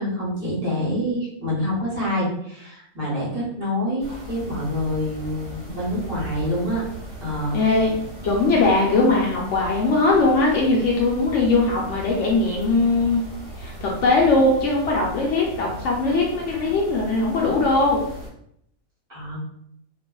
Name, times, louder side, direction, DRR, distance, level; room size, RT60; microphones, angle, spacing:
voice 1, 0.0-6.8 7.2-7.6 19.1-19.4, left 1 dB, 45° right, -8 dB, 1.1 m, -26 dB
sound 1, 4.0-18.3, equal, 70° right, 1.1 m, -38 dB
voice 2, 7.5-8.0 8.2-13.2 13.6-18.0, left 3 dB, 65° left, -3 dB, 0.8 m, -20 dB
2.6 x 2.4 x 2.2 m, 0.73 s
omnidirectional pair, 1.5 m